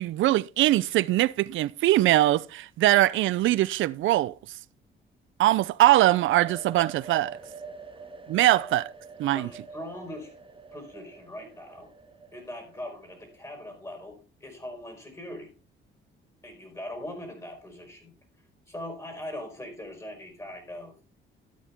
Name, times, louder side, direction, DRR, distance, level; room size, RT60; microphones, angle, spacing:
voice 1, 0.0-4.3 5.4-7.4 8.3-8.9 9.2-9.5, right 15 dB, 75° right, 0.5 m, -22 dB
sound 1, 6.0-13.7, right 4 dB, 25° right, 2.0 m, -46 dB
voice 2, 9.2-10.3 10.7-11.9 12.3-15.5 16.4-18.1 18.7-21.0, left 1 dB, 15° left, 4.6 m, -41 dB
13.0 x 8.3 x 3.5 m
cardioid pair, 90°, 20 cm